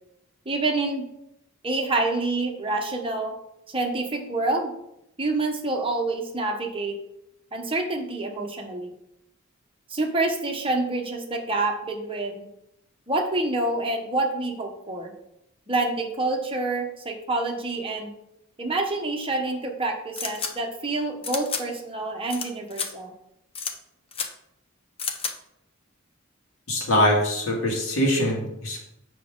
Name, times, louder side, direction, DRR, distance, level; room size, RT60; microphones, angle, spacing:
voice 1, 0.4-1.0 1.6-3.3 3.7-4.7 5.2-7.0 7.5-8.9 9.9-12.5 13.1-15.1 15.7-18.1 18.6-23.1, right 2 dB, 25° right, 2 dB, 1.0 m, -27 dB
sound 1, 20.2-20.5 21.2-21.6 22.3-22.5 22.7-22.9 23.5-23.7 24.1-24.3 25.0-25.3, left 5 dB, 25° left, 0.7 m, -30 dB
voice 2, 26.7-28.8, left 1 dB, 80° left, -2 dB, 2.4 m, -23 dB
8.3 x 6.1 x 3.8 m, 0.81 s
head